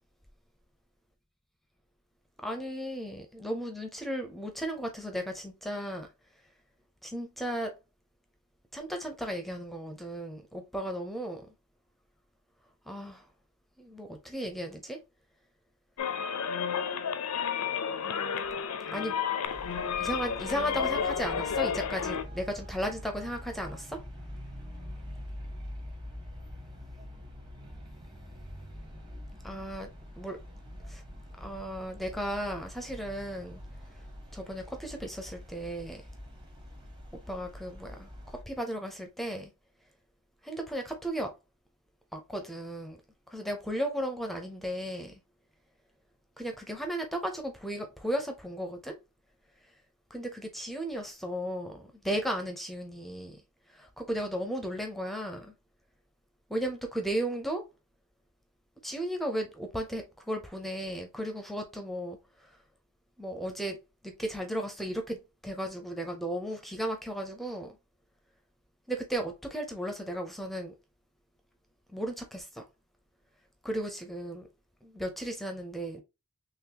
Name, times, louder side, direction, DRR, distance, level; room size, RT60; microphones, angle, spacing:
voice 1, 2.4-6.1 7.0-7.8 8.7-11.5 12.9-13.2 13.8-15.0 18.9-19.2 20.0-24.0 29.4-29.9 30.2-30.4 30.9-31.0 31.4-33.6 34.3-36.0 37.3-38.1 38.5-39.5 40.4-41.3 42.1-43.0 43.3-45.2 46.4-49.0 50.1-53.4 53.7-55.5 56.5-57.6 58.8-62.2 63.2-63.8 64.0-67.8 68.9-70.7 71.9-72.6 73.6-74.5 74.8-76.0, equal, ahead, 0.6 m, -35 dB
sound 1, 16.0-22.2, left 7 dB, 85° left, 0.6 m, -31 dB
Traffic noise roadway noise, 19.5-38.4, equal, 20° right, 1.0 m, -45 dB
3.9 x 3.1 x 2.8 m
head